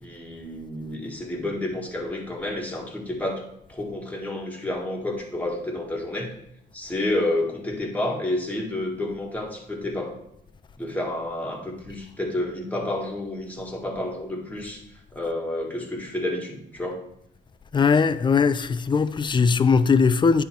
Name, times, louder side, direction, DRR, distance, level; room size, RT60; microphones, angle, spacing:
voice 1, 0.0-3.4 3.7-6.4 6.7-10.2 10.8-14.8 15.1-17.0, left 1 dB, 5° left, 1.7 m, -30 dB
voice 2, 17.7-20.4, left 5 dB, 25° left, 0.4 m, -20 dB
10.0 x 3.5 x 4.4 m
cardioid pair, 90°, 20 cm